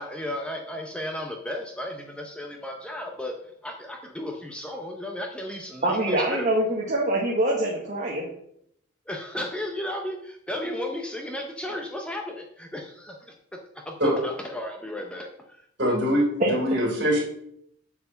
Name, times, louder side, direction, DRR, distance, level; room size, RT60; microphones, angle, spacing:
voice 1, 0.0-3.3 3.6-6.4 9.1-13.3 13.9-15.6, left 1 dB, 5° left, 1 dB, 0.7 m, -34 dB
voice 2, 5.8-8.3 16.4-16.5, right 1 dB, 35° right, -3 dB, 1.4 m, -24 dB
voice 3, 15.8-17.2, equal, 50° right, -2 dB, 3.8 m, -23 dB
8.8 x 4.7 x 7.0 m, 0.72 s
head